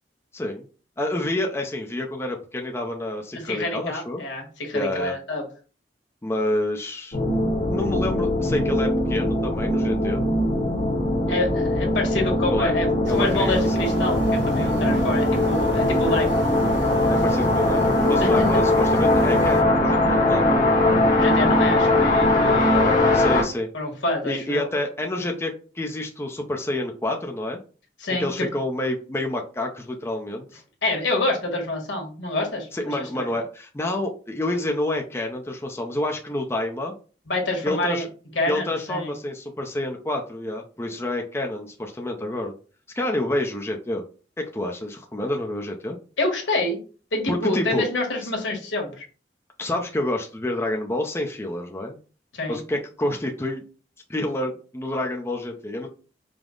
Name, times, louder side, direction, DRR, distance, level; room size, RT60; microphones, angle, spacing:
voice 1, 0.3-0.7 1.0-4.2 4.7-5.1 6.2-7.2 7.7-10.2 12.5-12.8 13.1-13.8 17.1-20.7 23.1-23.7 24.2-27.6 28.2-30.6 32.7-36.9 37.6-38.1 38.5-42.5 42.9-44.0 44.4-46.0 47.3-47.8 48.2-48.3 49.6-52.0 52.5-53.6 54.1-55.9, left 1 dB, 15° left, 1 dB, 0.4 m, -28 dB
voice 2, 3.3-5.4 11.3-12.9 13.1-16.4 18.2-18.6 21.1-23.2 23.7-24.7 28.0-28.5 30.8-33.3 37.3-38.0 38.3-39.1 46.2-46.8 47.1-49.1 52.3-52.6, left 2 dB, 90° left, 1 dB, 1.3 m, -27 dB
sound 1, 7.1-23.4, left 1 dB, 45° left, 1.2 m, -21 dB
sound 2, 13.0-19.6, right 1 dB, 85° right, 1.0 m, -35 dB
5.0 x 2.0 x 3.7 m, 0.38 s
head